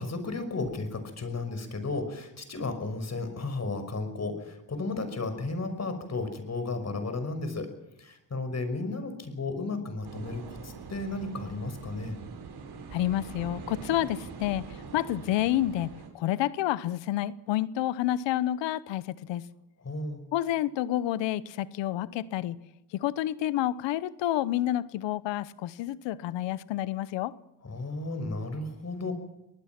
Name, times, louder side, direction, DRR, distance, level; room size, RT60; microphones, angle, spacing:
voice 1, 0.0-7.7 8.0-12.2 19.8-20.2 27.6-29.1, left 3 dB, 40° left, 5.6 m, -34 dB
sound 1, 10.0-16.1, right 5 dB, 65° right, 5.1 m, -43 dB
voice 2, 12.9-14.6 14.9-19.4 20.3-22.6 22.9-27.3, left 13 dB, 90° left, 1.0 m, -29 dB
25.0 x 19.5 x 6.0 m
cardioid pair, 75°, 42 cm